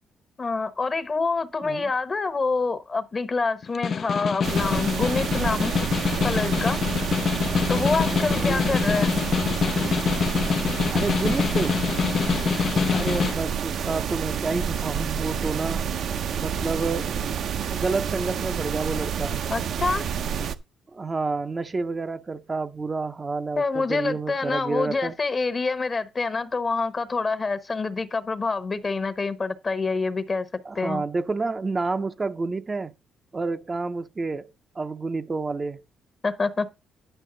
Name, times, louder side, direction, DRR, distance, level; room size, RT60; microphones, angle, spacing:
voice 1, 0.4-5.8 6.2-6.8 7.7-9.3 19.5-20.0 23.6-30.5 30.7-31.0 36.2-36.8, left 4 dB, 35° left, 1.0 m, -26 dB
Snare drum, 3.6-13.4, left 6 dB, 50° left, 0.4 m, -25 dB
sound 1, 4.4-20.6, right 8 dB, 70° right, 0.6 m, -29 dB
voice 2, 8.3-8.7 10.9-11.8 12.9-15.9 16.4-17.3 17.7-19.4 20.9-25.1 30.6-32.9 33.3-35.8, right 3 dB, 30° right, 0.6 m, -29 dB
10.0 x 6.3 x 3.8 m
cardioid pair, 90°, 0 cm